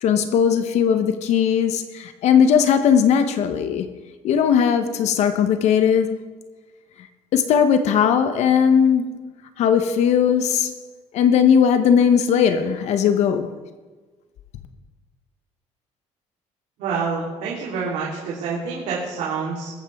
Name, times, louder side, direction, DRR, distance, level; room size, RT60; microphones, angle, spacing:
voice 1, 0.0-3.9 4.2-6.2 7.0-7.1 7.3-9.2 9.6-10.7 11.1-13.5, left 7 dB, 65° left, 9 dB, 0.9 m, -18 dB
voice 2, 16.8-19.7, right 5 dB, 80° right, -7 dB, 3.4 m, -27 dB
22.0 x 9.1 x 3.5 m, 1.3 s
cardioid pair, 135°, 12 cm